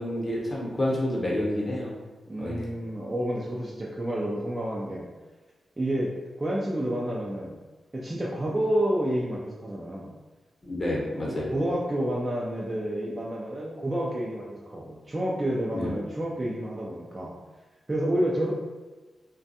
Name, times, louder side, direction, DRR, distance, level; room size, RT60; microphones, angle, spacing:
voice 1, 0.0-1.9 2.4-2.6 10.6-11.6 15.7-16.0, left 1 dB, 35° left, -4 dB, 0.9 m, -29 dB
voice 2, 2.3-5.1 5.8-6.1 6.4-7.6 7.9-10.1 11.2-17.3 17.9-18.5, right 1 dB, 25° right, -5 dB, 0.4 m, -29 dB
2.4 x 2.2 x 2.7 m, 1.2 s
cardioid pair, 65°, 0 cm